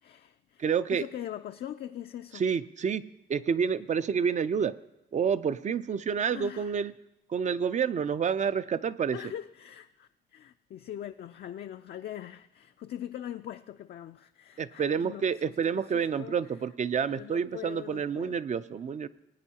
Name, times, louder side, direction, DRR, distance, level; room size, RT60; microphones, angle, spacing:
voice 1, 0.0-0.6 0.9-2.4 6.3-6.7 9.1-16.4 17.1-18.4, left 11 dB, 55° left, 0.4 m, -42 dB
voice 2, 0.6-1.0 2.3-3.0 3.3-4.7 5.1-6.9 7.3-9.2 14.6-19.1, right 7 dB, 35° right, 0.4 m, -28 dB
19.5 x 9.0 x 2.9 m
cardioid pair, 90°, 20 cm